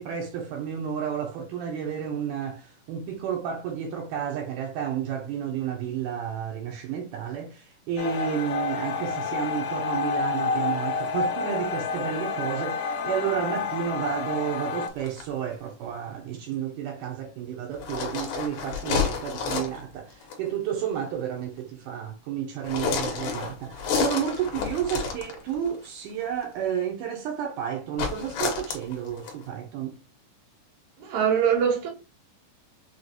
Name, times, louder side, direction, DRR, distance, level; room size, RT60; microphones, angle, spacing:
voice 1, 0.0-30.0, right 8 dB, 80° right, 2.1 m, -31 dB
sound 1, 8.0-14.9, left 5 dB, 85° left, 2.3 m, -29 dB
sound 2, 14.9-15.2 17.7-19.8 20.2-20.5 22.6-25.7 28.0-29.4, left 6 dB, 70° left, 2.3 m, -30 dB
voice 2, 31.0-31.9, right 7 dB, 60° right, 1.8 m, -23 dB
6.0 x 2.3 x 2.7 m
omnidirectional pair, 3.9 m